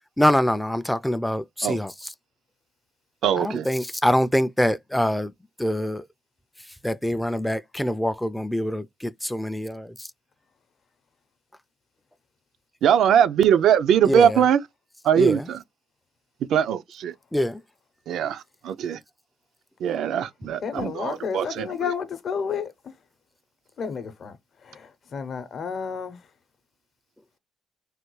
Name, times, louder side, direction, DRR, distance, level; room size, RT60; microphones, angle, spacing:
voice 1, 0.2-1.9 3.4-5.3 5.6-6.0 6.8-9.9 14.0-14.4 15.2-15.4 17.3-17.6, equal, 5° left, 0.3 m, -24 dB
voice 2, 3.2-3.7 12.8-14.6 15.0-15.6 16.5-17.1 18.1-19.0 19.8-21.9, right 9 dB, 75° right, 0.4 m, -21 dB
voice 3, 20.6-22.7 23.8-24.3 25.1-26.2, left 6 dB, 55° left, 0.6 m, -30 dB
3.3 x 2.2 x 3.1 m
cardioid pair, 90°, 0 cm